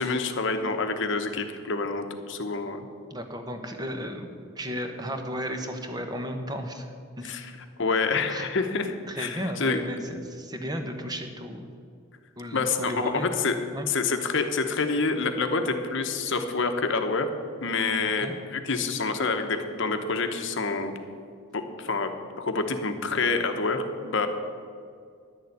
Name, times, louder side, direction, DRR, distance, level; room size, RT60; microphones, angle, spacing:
voice 1, 0.0-2.8 7.2-7.5 7.8-9.8 12.5-13.5 13.9-17.3 17.6-20.9 21.5-22.1 22.4-24.3, left 4 dB, 55° left, 6 dB, 1.0 m, -27 dB
voice 2, 3.1-4.3 4.5-6.9 7.2-7.5 8.3-8.5 9.1-11.7 12.4-13.3 13.7-13.9 18.2-18.3, equal, 20° right, 5 dB, 1.0 m, -34 dB
11.0 x 6.9 x 9.5 m, 2.2 s
head